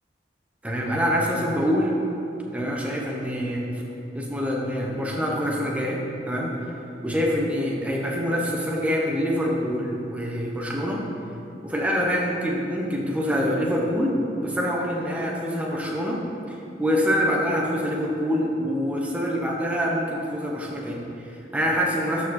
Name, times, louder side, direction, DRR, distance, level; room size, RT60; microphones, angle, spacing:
voice 1, 0.6-2.0 2.5-3.7 4.1-6.6 7.0-11.1 11.6-22.3, equal, 10° right, -2 dB, 1.0 m, -25 dB
13.0 x 5.0 x 4.3 m, 2.9 s
head